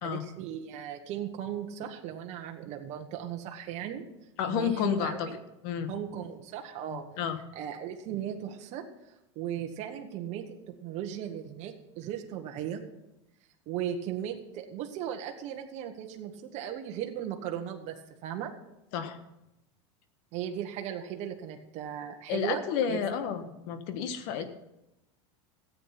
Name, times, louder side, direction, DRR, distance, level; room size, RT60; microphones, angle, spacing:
voice 1, 0.0-4.0 4.4-5.4 5.9-7.0 7.5-8.8 9.3-12.8 13.7-18.0 18.2-18.5 20.3-22.6 22.9-23.0 24.3-24.4, right 10 dB, 50° right, 3 dB, 1.3 m, -37 dB
voice 2, 4.4-5.3 5.6-5.9 6.9-7.4 18.9-19.2 22.3-24.4, left 8 dB, 60° left, 9 dB, 1.4 m, -31 dB
14.0 x 8.6 x 5.8 m, 0.91 s
supercardioid pair, 125°, 15 cm